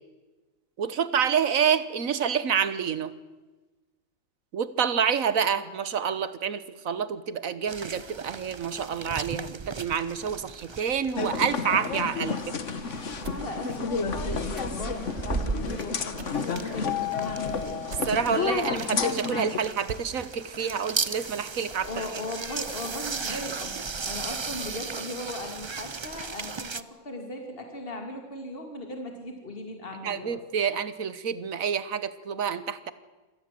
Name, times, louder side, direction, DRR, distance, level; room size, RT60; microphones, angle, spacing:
voice 1, 0.8-3.1 4.5-12.6 18.1-22.0 23.3-23.4 30.0-32.9, right 7 dB, 75° right, 15 dB, 1.6 m, -28 dB
sound 1, 7.7-26.8, right 4 dB, 30° right, 0.5 m, -37 dB
sound 2, 11.2-19.6, left 5 dB, 60° left, 1.6 m, -31 dB
sound 3, 12.9-18.6 19.0-19.1 19.3-19.4 19.8-22.0, right 5 dB, 55° right, 1.5 m, -46 dB
voice 2, 13.2-17.8 21.8-30.4, left 2 dB, 40° left, 3 dB, 2.9 m, -38 dB
26.5 x 18.0 x 7.7 m, 1.2 s
omnidirectional pair, 1.5 m